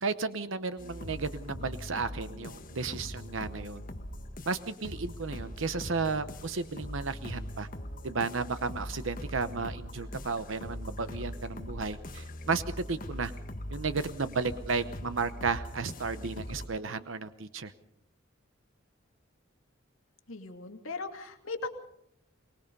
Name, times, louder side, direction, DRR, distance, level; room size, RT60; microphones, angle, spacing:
voice 1, 0.0-3.8 4.5-7.7 8.0-12.6 12.9-13.3 13.7-17.7, right 4 dB, 75° right, 12 dB, 0.9 m, -33 dB
sound 1, 0.8-16.7, left 1 dB, 40° left, 1.5 m, -41 dB
voice 2, 20.3-21.7, left 3 dB, 90° left, 4 dB, 2.6 m, -38 dB
24.5 x 20.0 x 5.5 m, 0.73 s
head